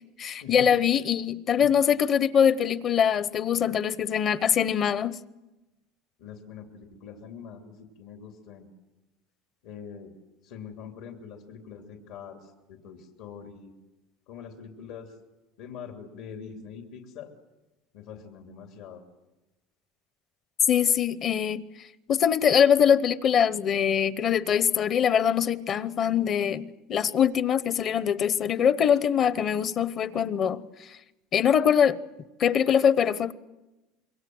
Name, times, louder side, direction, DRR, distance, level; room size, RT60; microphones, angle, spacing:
voice 1, 0.2-5.2 20.7-21.6 22.1-30.6 31.3-32.0 32.4-33.3, left 8 dB, 35° left, 0.9 m, -23 dB
voice 2, 6.2-8.7 9.6-10.1 10.4-13.7 14.3-15.1 15.6-17.3 17.9-19.0, left 7 dB, 70° left, 3.0 m, -44 dB
27.0 x 23.0 x 7.9 m
cardioid pair, 150°, 0 cm